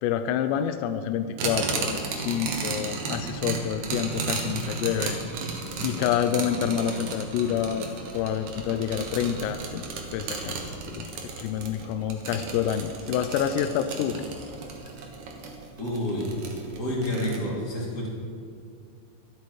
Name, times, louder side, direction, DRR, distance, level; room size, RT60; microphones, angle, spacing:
voice 1, 0.0-5.2 5.8-7.9 8.1-11.1 11.4-14.2, left 9 dB, 85° left, 8 dB, 2.5 m, -28 dB
sound 1, 1.4-17.4, right 4 dB, 85° right, 1.6 m, -34 dB
voice 2, 15.8-16.3 16.8-18.1, left 1 dB, 30° left, -4 dB, 2.2 m, -29 dB
23.5 x 8.1 x 4.7 m, 2.3 s
omnidirectional pair, 5.6 m